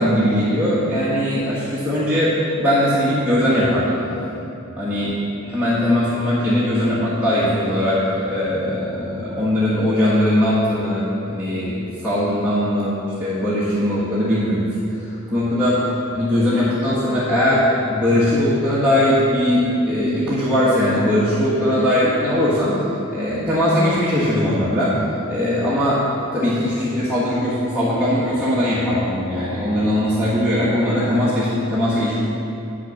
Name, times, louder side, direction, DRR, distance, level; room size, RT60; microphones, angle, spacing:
voice 1, 0.0-4.0 4.8-5.1 5.5-14.6 14.9-15.8 16.1-22.8 23.1-25.0 25.3-26.0 26.3-32.2, left 1 dB, 10° right, -11 dB, 1.4 m, -20 dB
8.7 x 6.2 x 6.5 m, 2.8 s
head